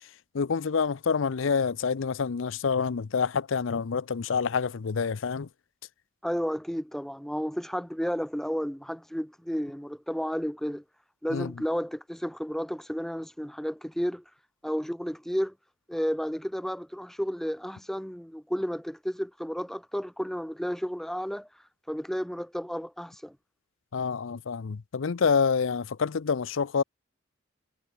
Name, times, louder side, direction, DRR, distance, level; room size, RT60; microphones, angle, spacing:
voice 1, 0.3-5.5 11.3-11.5 23.9-26.8, left 5 dB, 80° left, 0.6 m, -27 dB
voice 2, 6.2-10.8 11.2-14.2 14.6-15.5 15.9-21.5 21.9-23.4, equal, ahead, 0.8 m, -32 dB
head